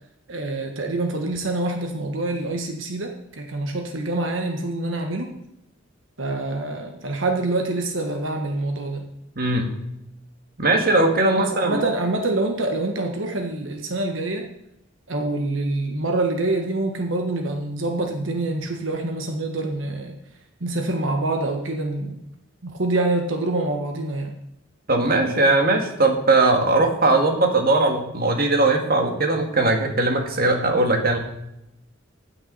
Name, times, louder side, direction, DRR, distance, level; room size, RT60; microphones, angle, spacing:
voice 1, 0.3-5.3 6.2-9.1 11.3-14.5 15.1-20.1 20.6-22.2 22.6-24.3, right 2 dB, 90° right, 3 dB, 1.4 m, -26 dB
voice 2, 9.4-9.7 10.6-11.9 24.9-31.2, right 2 dB, 50° right, 2 dB, 2.1 m, -19 dB
15.0 x 9.6 x 4.1 m, 0.84 s
head